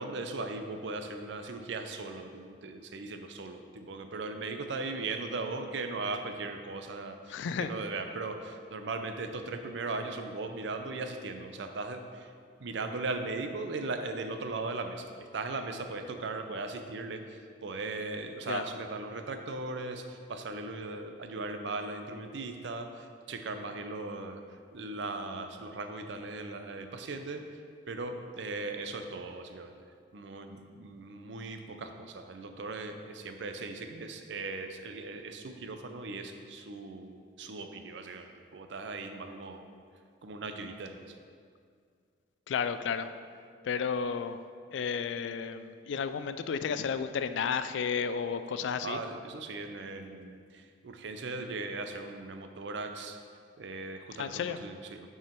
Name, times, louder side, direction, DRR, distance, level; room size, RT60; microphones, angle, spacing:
voice 1, 0.0-12.3 12.6-15.1 15.3-27.4 27.9-29.8 30.1-39.6 40.2-41.1 48.8-53.2 53.6-55.1, right 3 dB, 75° right, 6 dB, 0.5 m, -38 dB
voice 2, 7.3-7.7 18.5-18.6 42.5-43.1 43.6-44.4 44.7-49.0 54.2-54.6, left 6 dB, 80° left, 11 dB, 0.3 m, -32 dB
6.0 x 4.7 x 4.4 m, 2.1 s
head